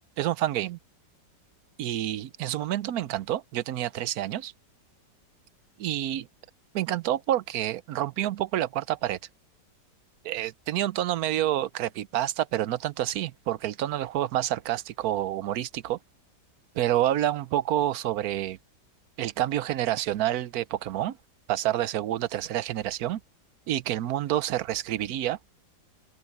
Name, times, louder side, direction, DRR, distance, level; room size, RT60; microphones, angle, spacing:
voice 1, 0.2-0.8 1.8-4.5 5.8-6.3 6.7-9.2 10.2-16.0 16.7-18.6 19.2-21.2 21.5-23.2 23.7-25.4, right 13 dB, 65° right, 1.1 m, -28 dB
open air
omnidirectional pair, 1.9 m